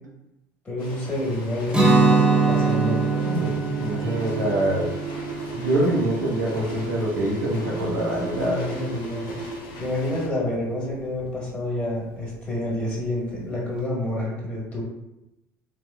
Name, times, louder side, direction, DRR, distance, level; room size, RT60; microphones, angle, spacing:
voice 1, 0.6-3.0 8.3-9.4 9.8-14.8, left 1 dB, 20° left, -5 dB, 1.3 m, -28 dB
sound 1, 0.8-10.3, left 3 dB, 50° left, 0.6 m, -41 dB
Guitar, 1.7-7.5, right 4 dB, 10° right, 0.7 m, -23 dB
voice 2, 3.1-4.9 5.5-8.7, right 1 dB, 85° right, -4 dB, 0.8 m, -25 dB
sound 2, 4.0-9.9, right 3 dB, 40° right, 0.7 m, -36 dB
3.2 x 2.5 x 2.2 m, 0.93 s
figure-of-eight pair, 65°, 9 cm